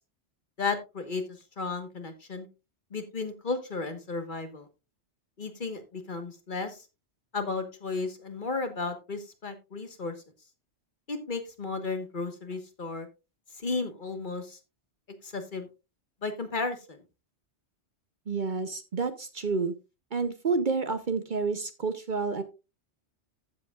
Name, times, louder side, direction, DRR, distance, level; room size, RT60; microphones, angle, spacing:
voice 1, 0.6-1.2 1.6-2.5 2.9-4.7 5.4-6.9 7.3-10.1 11.1-13.1 13.6-14.6 15.2-15.7 16.2-17.0, left 4 dB, 45° left, 7 dB, 1.5 m, -34 dB
voice 2, 18.3-19.7 20.1-22.4, right 4 dB, 45° right, 10 dB, 0.9 m, -29 dB
14.5 x 7.7 x 2.4 m, 0.27 s
omnidirectional pair, 1.2 m